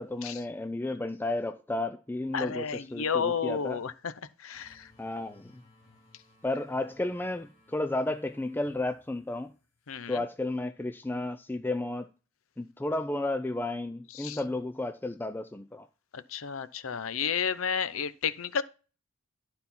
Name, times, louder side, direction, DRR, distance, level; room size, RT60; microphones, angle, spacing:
voice 1, 0.0-3.8 5.0-5.6 6.4-9.5 10.1-12.1 12.6-15.9, left 2 dB, 10° left, 0.4 m, -33 dB
voice 2, 2.3-4.1 4.4-4.9 9.9-10.2 14.1-14.4 16.1-18.6, left 6 dB, 70° left, 0.6 m, -31 dB
sound 1, 4.5-9.9, left 2 dB, 25° left, 2.3 m, -61 dB
12.0 x 4.3 x 5.6 m
head